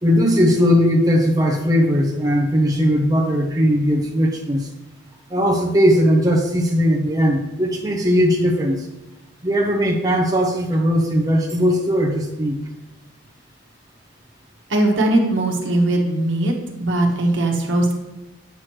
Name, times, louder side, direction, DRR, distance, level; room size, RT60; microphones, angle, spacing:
voice 1, 0.0-4.7 5.3-8.9 9.4-12.6, equal, 20° right, 0 dB, 0.7 m, -18 dB
voice 2, 14.7-16.5 16.8-17.9, right 1 dB, 75° right, 1 dB, 1.2 m, -19 dB
8.1 x 3.1 x 5.9 m, 1.1 s
head